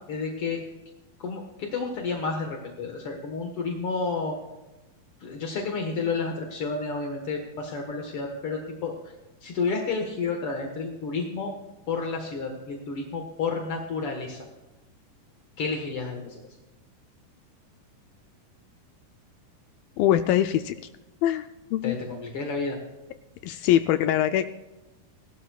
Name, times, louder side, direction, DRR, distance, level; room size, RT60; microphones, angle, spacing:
voice 1, 0.1-0.6 1.2-4.3 5.2-8.9 9.4-11.5 11.9-14.4 15.6-16.4 21.8-22.8, left 4 dB, 60° left, 2 dB, 1.5 m, -30 dB
voice 2, 20.0-20.8 21.2-22.0 23.4-24.5, left 12 dB, 85° left, 9 dB, 2.1 m, -23 dB
19.5 x 12.5 x 2.3 m, 1.1 s
omnidirectional pair, 4.5 m